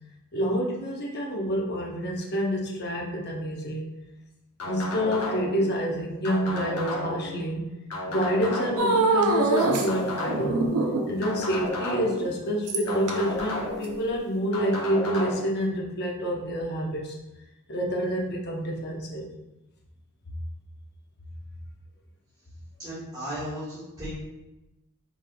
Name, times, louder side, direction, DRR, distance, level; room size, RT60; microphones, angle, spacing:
voice 1, 0.3-3.9 4.6-7.6 8.0-10.6 11.1-17.2 17.7-19.3, equal, 45° left, -2 dB, 0.8 m, -28 dB
sound 1, 4.6-5.6 6.2-7.3 7.9-8.9 9.6-10.6 11.2-12.3 12.9-13.9 14.5-15.4, left 1 dB, 85° left, 1.0 m, -32 dB
sound 2, 8.8-9.9 10.3-11.2 12.7-13.1 13.8-13.9, right 3 dB, 90° right, 0.5 m, -23 dB
voice 2, 22.8-24.1, equal, 20° right, -13 dB, 1.3 m, -35 dB
5.3 x 3.2 x 2.3 m, 0.97 s
head